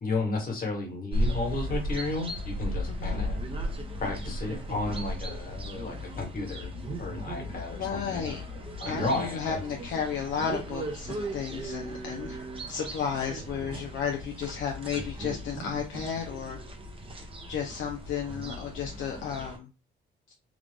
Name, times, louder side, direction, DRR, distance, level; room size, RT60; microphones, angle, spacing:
voice 1, 0.0-3.4 4.0-6.7 7.0-8.3 8.8-9.6, left 3 dB, 45° left, 1 dB, 1.5 m, -33 dB
sound 1, 1.1-19.6, equal, 25° right, 0.9 m, -36 dB
voice 2, 3.0-3.3 7.7-8.4 8.8-12.4 12.7-16.6 17.2-19.7, left 7 dB, 75° left, 1 dB, 0.7 m, -33 dB
3.6 x 2.4 x 3.4 m, 0.31 s
cardioid pair, 90°, 20 cm